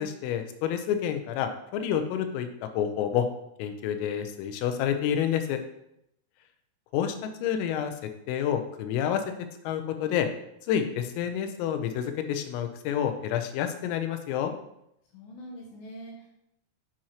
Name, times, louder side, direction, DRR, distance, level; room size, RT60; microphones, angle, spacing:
voice 1, 0.0-3.3 3.6-5.6 6.9-7.9 8.3-9.2 9.7-10.3 10.7-14.5, left 9 dB, 90° left, 7 dB, 3.5 m, -29 dB
voice 2, 15.0-16.3, equal, 70° left, -2 dB, 2.8 m, -44 dB
8.5 x 7.7 x 2.9 m, 0.78 s
omnidirectional pair, 5.8 m